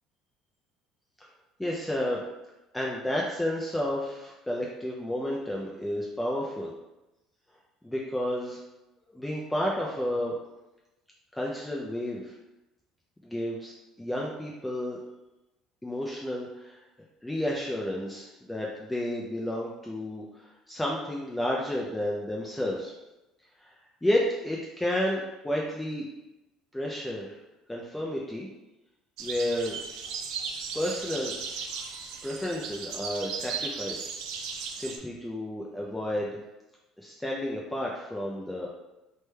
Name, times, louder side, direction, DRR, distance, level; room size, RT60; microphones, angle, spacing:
voice 1, 1.6-2.2 2.7-6.7 7.8-8.6 9.1-10.3 11.3-12.3 13.2-13.7 14.0-15.0 15.8-16.8 17.2-22.9 23.6-23.7 24.0-26.1 26.7-27.4 27.7-28.5 29.2-29.8 30.7-31.6 32.2-34.1 34.7-36.4 37.0-38.7, left 1 dB, 5° left, -3 dB, 0.4 m, -31 dB
sound 1, 29.2-35.0, right 5 dB, 80° right, 0.4 m, -36 dB
3.2 x 2.1 x 3.2 m, 0.98 s
cardioid pair, 115°, 0 cm